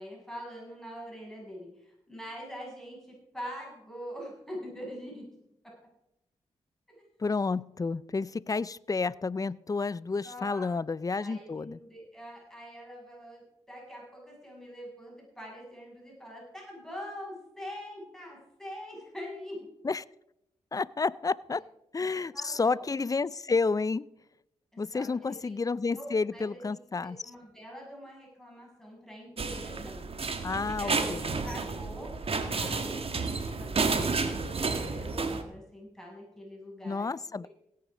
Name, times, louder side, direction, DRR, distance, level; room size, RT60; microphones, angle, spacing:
voice 1, 0.0-5.3 6.9-7.1 10.2-10.7 11.1-19.6 22.0-22.8 24.7-25.6 25.9-30.0 30.6-31.2 31.4-37.5, equal, 5° left, -3 dB, 6.9 m, -44 dB
voice 2, 7.2-11.8 19.8-20.0 20.7-21.6 21.9-24.1 24.8-27.3 30.4-31.4 36.8-37.5, left 4 dB, 30° left, 21 dB, 0.5 m, -30 dB
sound 1, 29.4-35.4, right 4 dB, 55° right, 1.7 m, -31 dB
16.5 x 9.5 x 5.0 m, 0.83 s
cardioid pair, 50°, 12 cm